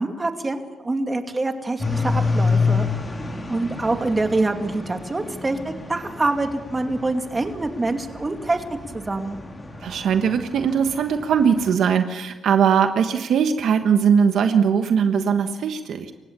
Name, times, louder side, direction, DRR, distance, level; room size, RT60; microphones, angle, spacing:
voice 1, 0.0-2.9 3.5-9.4, right 2 dB, 20° right, 5 dB, 2.5 m, -25 dB
sound 1, 1.8-11.7, left 4 dB, 20° left, 4.3 m, -28 dB
voice 2, 9.8-16.1, right 7 dB, 65° right, 7 dB, 1.3 m, -20 dB
28.0 x 16.5 x 7.0 m, 1.2 s
cardioid pair, 90°, 0 cm